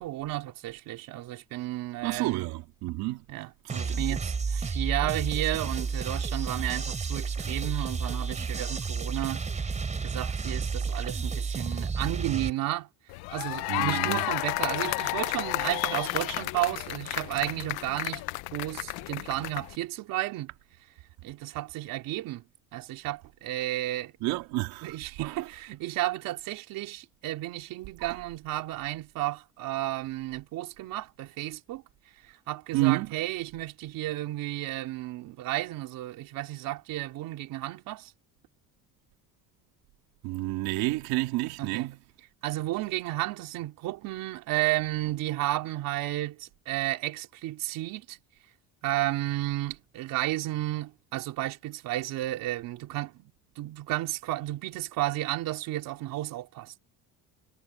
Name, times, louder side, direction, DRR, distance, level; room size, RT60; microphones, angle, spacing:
voice 1, 0.0-2.5 3.3-9.7 10.0-12.9 13.3-18.2 18.5-20.5 21.2-22.4 22.7-24.1 24.8-31.8 32.5-38.1 41.6-41.9 42.4-48.2 48.8-56.7, right 16 dB, 60° right, 3.8 m, -32 dB
voice 2, 2.0-3.2 3.6-4.2 13.7-14.3 24.2-25.0 25.2-25.4 28.0-28.2 32.7-33.1 40.2-42.0, right 19 dB, 75° right, 3.4 m, -30 dB
sound 1, 3.7-12.5, right 5 dB, 20° right, 3.9 m, -31 dB
sound 2, 13.1-19.8, left 20 dB, 75° left, 0.9 m, -32 dB
cardioid pair, 160°, 37 cm